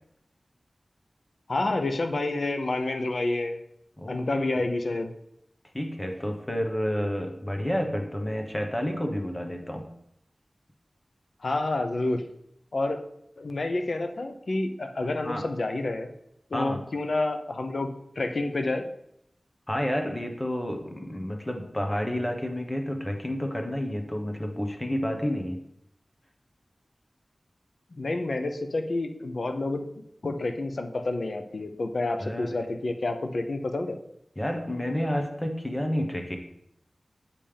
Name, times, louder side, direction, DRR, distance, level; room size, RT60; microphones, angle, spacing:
voice 1, 1.5-3.6 4.1-5.1 11.4-12.3 12.7-13.0 13.4-16.1 16.5-18.9 28.0-29.9 30.2-34.0, left 2 dB, 70° left, 6 dB, 0.7 m, -29 dB
voice 2, 4.0-4.6 5.7-9.9 15.2-15.4 16.5-16.8 19.7-25.6 32.2-32.7 34.4-36.4, equal, 20° left, 3 dB, 1.1 m, -30 dB
8.4 x 5.5 x 3.4 m, 0.77 s
wide cardioid pair, 75°, 0 cm